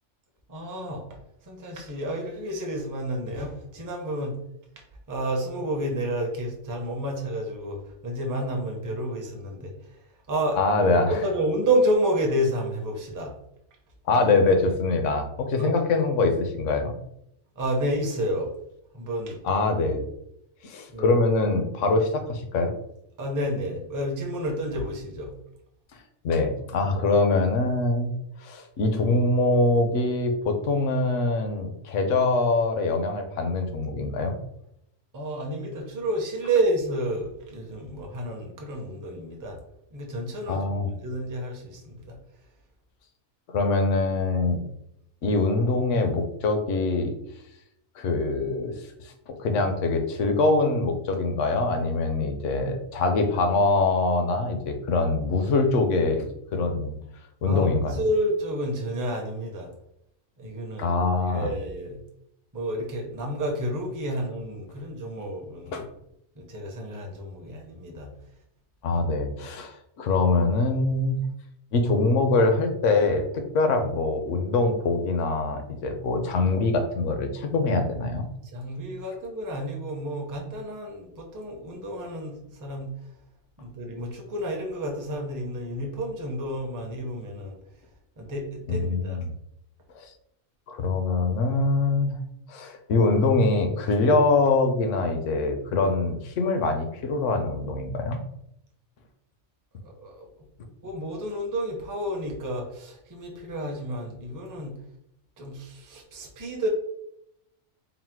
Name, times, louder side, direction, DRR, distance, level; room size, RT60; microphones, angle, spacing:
voice 1, 0.5-1.0 1.5-4.3 5.1-9.7 10.3-10.6 10.9-13.3 15.6-15.8 17.6-18.5 18.9-19.5 20.9-21.2 23.2-25.3 35.1-39.6 39.9-42.2 57.4-59.7 60.4-61.0 61.3-62.0 62.5-65.8 66.4-68.1 78.5-82.9 83.6-87.5 88.2-89.2 99.8-100.3 100.8-104.7 105.4-106.7, right 1 dB, 20° right, 1 dB, 0.5 m, -30 dB
voice 2, 10.5-11.2 14.1-16.9 19.4-20.0 20.6-22.7 26.2-28.1 28.4-34.3 40.5-40.9 43.5-44.6 45.2-47.1 48.0-48.7 49.3-56.3 56.5-56.9 57.4-57.9 60.8-61.5 65.7-65.8 68.8-71.2 71.7-78.3 88.7-89.3 90.0-90.1 90.7-92.1 92.5-98.2, left 3 dB, 70° left, 5 dB, 1.0 m, -24 dB
4.0 x 2.0 x 4.4 m, 0.79 s
omnidirectional pair, 1.4 m